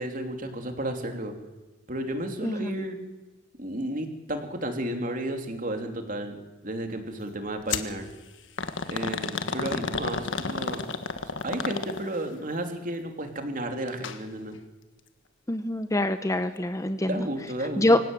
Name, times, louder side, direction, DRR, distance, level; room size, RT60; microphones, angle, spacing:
voice 1, 0.0-1.3 1.9-3.0 3.6-8.1 8.9-10.8 11.4-14.6 17.1-18.0, right 1 dB, 40° right, 5 dB, 3.2 m, -32 dB
sound 1, 7.7-7.9 8.6-12.3 13.9-14.2 14.5-14.6 15.5-15.6, left 4 dB, 65° left, 1.5 m, -31 dB
voice 2, 15.5-17.2 17.8-18.0, left 1 dB, 15° left, 10 dB, 0.9 m, -24 dB
24.5 x 16.5 x 9.1 m, 1.1 s
head